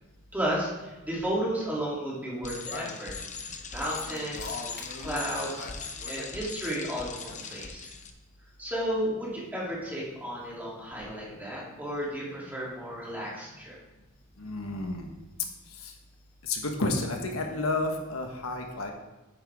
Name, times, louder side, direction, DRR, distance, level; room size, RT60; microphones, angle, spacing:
voice 1, 0.3-3.1 3.7-4.6 5.0-5.7 6.1-7.9 8.6-13.8, right 1 dB, 10° right, -6 dB, 2.9 m, -33 dB
Bicycle, 2.4-8.1, left 5 dB, 35° left, 0.8 m, -40 dB
sound 1, 2.7-6.3 7.1-7.8, left 3 dB, 50° left, 1.1 m, -42 dB
voice 2, 14.4-15.1 15.8-15.9 16.4-18.9, left 2 dB, 75° left, 3 dB, 1.3 m, -31 dB
9.0 x 8.9 x 3.6 m, 1.1 s
head